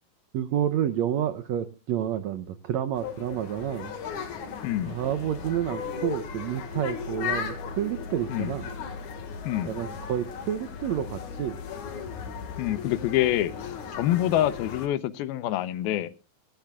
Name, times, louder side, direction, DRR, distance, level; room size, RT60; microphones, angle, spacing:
voice 1, 0.3-3.9 4.8-8.7 9.6-11.6 14.1-14.3, right 10 dB, 85° right, 9 dB, 1.5 m, -29 dB
sound 1, 2.9-14.9, left 6 dB, 60° left, 3.1 m, -36 dB
voice 2, 4.6-5.0 8.3-8.5 9.5-9.7 12.6-16.1, left 13 dB, 85° left, 15 dB, 2.8 m, -26 dB
18.5 x 15.0 x 2.4 m, 0.31 s
omnidirectional pair, 4.2 m